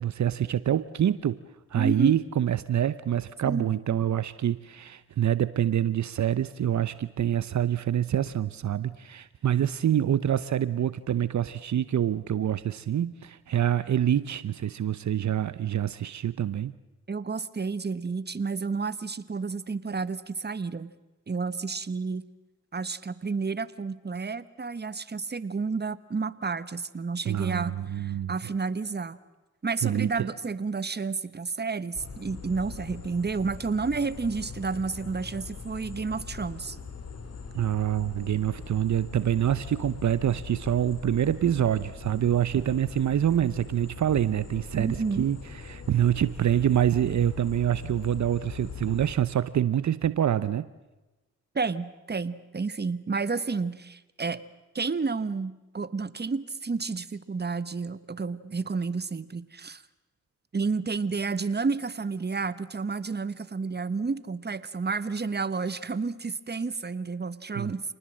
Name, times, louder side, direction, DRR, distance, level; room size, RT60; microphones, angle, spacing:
voice 1, 0.0-1.4 1.7-16.7 27.3-28.3 29.8-30.3 37.5-45.4 45.6-50.7 67.6-67.7, right 10 dB, 70° right, 15 dB, 0.8 m, -26 dB
voice 2, 1.8-2.2 3.5-3.7 17.1-20.9 21.3-22.2 22.7-29.2 29.6-36.8 44.7-45.3 51.5-54.4 54.7-59.8 60.5-67.8, right 4 dB, 35° right, 15 dB, 1.3 m, -31 dB
sound 1, 31.9-49.1, left 5 dB, 55° left, 3.5 m, -41 dB
28.0 x 19.5 x 7.6 m, 1.1 s
cardioid pair, 55°, 30 cm